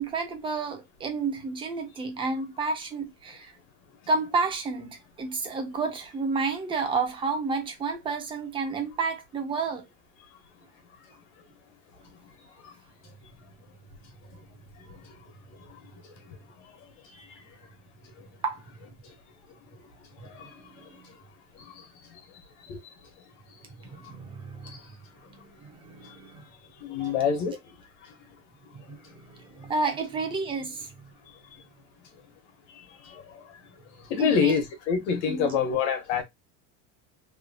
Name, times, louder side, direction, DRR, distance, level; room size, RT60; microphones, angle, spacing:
voice 1, 0.0-3.5 4.1-9.9 18.4-18.6 20.2-20.3 20.7-21.1 23.8-24.8 25.6-26.4 27.0-27.6 28.7-31.1 34.2-34.5 35.3-35.6, right 4 dB, 15° right, 0.5 m, -31 dB
voice 2, 26.8-27.5 34.1-36.2, left 6 dB, 90° left, 1.1 m, -25 dB
3.0 x 2.6 x 2.2 m
cardioid pair, 170°, 33 cm